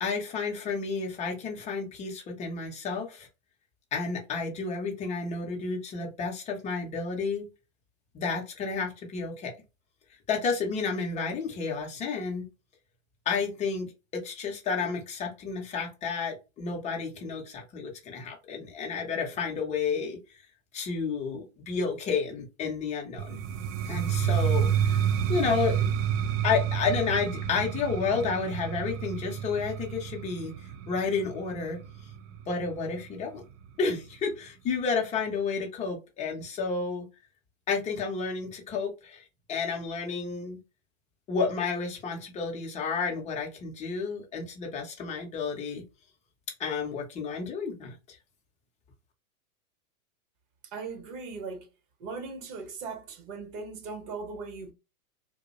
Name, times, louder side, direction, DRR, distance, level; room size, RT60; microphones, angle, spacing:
voice 1, 0.0-3.3 3.9-7.5 8.1-9.5 10.3-12.5 13.3-20.2 20.7-23.4 23.8-25.0 25.3-25.9 26.4-30.5 30.9-31.8 32.5-33.4 33.8-37.1 37.7-40.6 41.3-45.8 46.6-48.2, left 5 dB, 15° left, 0.6 m, -31 dB
sound 1, 23.2-33.0, right 8 dB, 60° right, 0.5 m, -29 dB
voice 2, 50.7-51.7 52.0-54.7, right 4 dB, 40° right, 0.9 m, -38 dB
2.5 x 2.0 x 2.4 m
hypercardioid pair, 125°, 44 cm